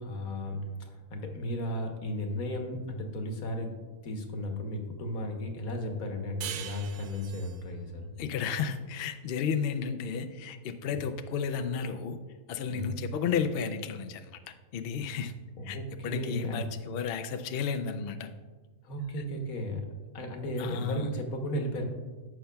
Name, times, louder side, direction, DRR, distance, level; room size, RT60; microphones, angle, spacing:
voice 1, 0.0-3.8 4.0-8.1 10.9-11.0 12.7-12.9 15.6-16.7 18.8-19.9 20.1-21.8, equal, 65° left, 4 dB, 1.4 m, -35 dB
sound 1, 6.4-9.6, right 9 dB, 75° right, 1.1 m, -43 dB
voice 2, 8.2-12.2 12.5-14.4 14.7-15.3 15.6-15.8 16.0-18.3 20.6-21.1, left 6 dB, 85° left, 8 dB, 0.5 m, -33 dB
15.0 x 5.8 x 2.3 m, 1.3 s
omnidirectional pair, 1.7 m